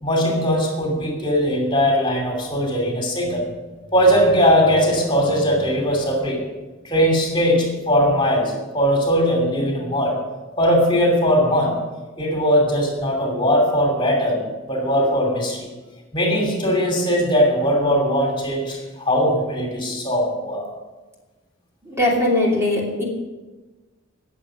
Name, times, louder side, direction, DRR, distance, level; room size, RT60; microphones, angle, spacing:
voice 1, 0.0-3.5 3.9-6.4 6.9-10.1 10.6-11.8 12.2-14.4 14.7-15.7 16.1-18.8 19.0-20.6, equal, 25° left, 1 dB, 2.7 m, -19 dB
voice 2, 21.8-23.0, left 1 dB, 15° right, -3 dB, 2.7 m, -20 dB
19.0 x 7.5 x 6.3 m, 1.2 s
head